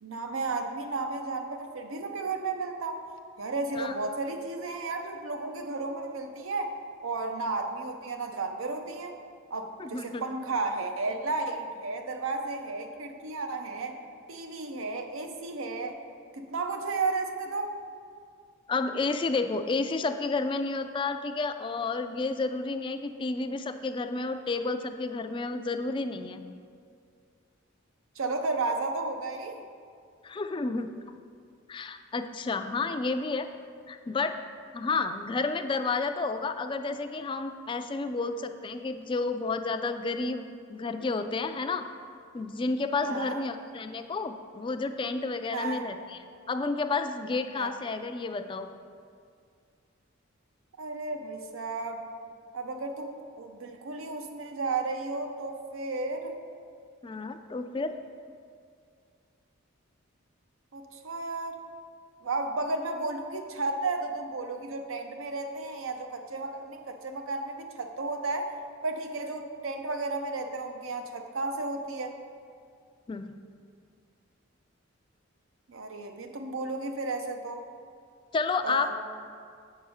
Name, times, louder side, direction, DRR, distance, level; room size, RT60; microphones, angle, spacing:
voice 1, 0.0-3.0 3.4-6.7 7.0-9.1 9.5-14.0 14.3-16.0 16.3-17.7 28.2-29.6 43.0-43.4 45.5-45.8 47.5-47.7 50.8-52.1 52.5-56.4 60.7-61.6 62.2-68.5 68.8-72.2 75.7-77.6 78.6-78.9, right 3 dB, 80° right, 5 dB, 0.7 m, -33 dB
voice 2, 9.8-10.2 18.7-26.4 30.2-30.9 31.7-33.5 33.9-34.4 34.7-41.9 42.3-46.2 46.5-48.7 57.0-57.9 73.1-73.3 78.3-78.9, left 3 dB, 25° left, 8 dB, 0.3 m, -31 dB
7.9 x 4.8 x 5.5 m, 2.3 s
head